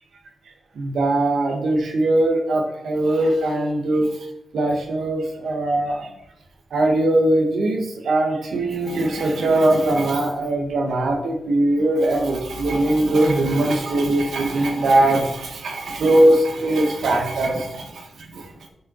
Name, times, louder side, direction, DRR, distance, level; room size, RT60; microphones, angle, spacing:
voice 1, 0.7-4.2 4.5-6.1 6.7-18.5, right 1 dB, 85° right, 3 dB, 1.6 m, -20 dB
8.5 x 6.9 x 4.1 m, 0.83 s
wide cardioid pair, 155°, 0 cm